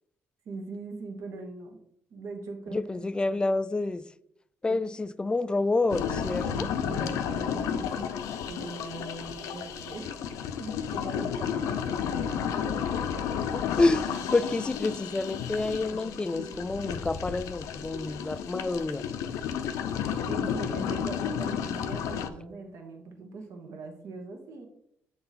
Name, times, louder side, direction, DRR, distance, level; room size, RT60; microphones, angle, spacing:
voice 1, 0.4-1.8 2.1-3.4 4.7-4.8 6.5-10.1 10.6-12.8 13.1-13.3 20.1-24.7, right 3 dB, 70° right, 1.2 m, -41 dB
voice 2, 2.7-4.0 4.6-6.7 13.8-19.1, left 2 dB, 15° left, 0.3 m, -28 dB
sound 1, 5.9-22.3, left 8 dB, 85° left, 0.5 m, -32 dB
7.6 x 3.8 x 4.1 m
cardioid pair, 90°, 5 cm